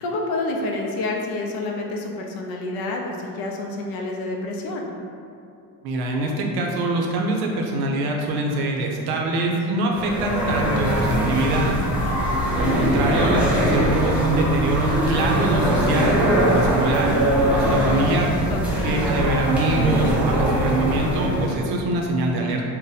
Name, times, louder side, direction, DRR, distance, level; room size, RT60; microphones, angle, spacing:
voice 1, 0.0-4.9 12.0-12.4 18.5-19.1, left 2 dB, 65° left, 1 dB, 0.5 m, -29 dB
voice 2, 5.8-11.8 12.5-16.2 16.5-17.1 17.5-18.3 18.8-22.6, right 2 dB, 75° right, 0 dB, 0.6 m, -24 dB
sound 1, 9.9-21.6, right 1 dB, 5° right, 0.3 m, -21 dB
2.6 x 2.1 x 3.9 m, 2.5 s
cardioid pair, 160°, 38 cm